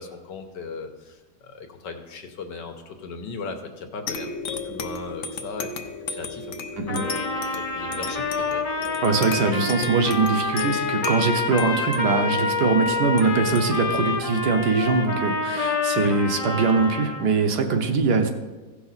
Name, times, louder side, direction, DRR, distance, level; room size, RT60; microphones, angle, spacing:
voice 1, 0.0-5.7 6.1-8.6 15.9-16.2, left 4 dB, 75° left, 5 dB, 1.6 m, -37 dB
sound 1, 4.1-15.1, left 4 dB, 60° left, 0.9 m, -35 dB
Trumpet, 6.9-17.3, left 4 dB, 30° left, 0.6 m, -27 dB
voice 2, 9.0-18.3, right 4 dB, 70° right, 5 dB, 1.4 m, -22 dB
15.5 x 5.9 x 4.1 m, 1.2 s
omnidirectional pair, 1.9 m